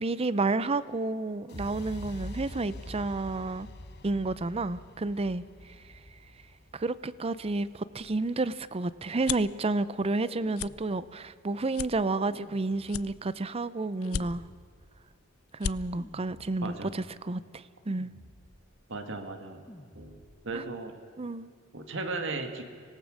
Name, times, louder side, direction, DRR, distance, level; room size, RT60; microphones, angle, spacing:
voice 1, 0.0-3.7 4.0-5.4 6.7-14.4 15.5-18.1 20.5-20.6 21.2-21.5, right 3 dB, 30° right, 16 dB, 0.5 m, -31 dB
sound 1, 1.5-9.4, left 1 dB, 50° left, 1.3 m, -45 dB
sound 2, 8.0-9.6 10.1-10.3 10.5-10.7 11.2-11.3 11.7-12.5 12.9-13.5 14.0-14.7 15.1-15.2 15.5-15.8, left 8 dB, 85° left, 0.4 m, -36 dB
sound 3, 10.2-11.4 12.1-13.3 14.0-15.2 15.9-17.0 17.9-18.8 19.7-20.6, equal, 15° left, 1.5 m, -52 dB
voice 2, 16.6-17.0 18.9-19.6 20.0-20.2 20.4-20.9 21.7-22.7, right 3 dB, 60° right, 6 dB, 1.9 m, -36 dB
25.5 x 18.0 x 6.4 m, 2.2 s
head